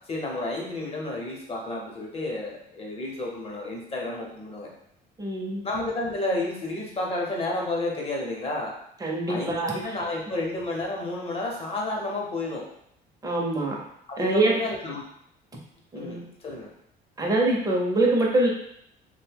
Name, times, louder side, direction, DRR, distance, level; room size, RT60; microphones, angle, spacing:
voice 1, 0.1-4.7 5.6-8.7 9.3-12.6 14.1-15.0 15.9-16.7, left 2 dB, 35° left, -1 dB, 0.8 m, -31 dB
voice 2, 5.2-5.6 9.0-9.8 13.2-13.8 14.2-14.5 15.9-16.2 17.2-18.5, right 2 dB, 20° right, -1 dB, 0.7 m, -24 dB
2.7 x 2.2 x 3.3 m, 0.72 s
cardioid pair, 110°, 17 cm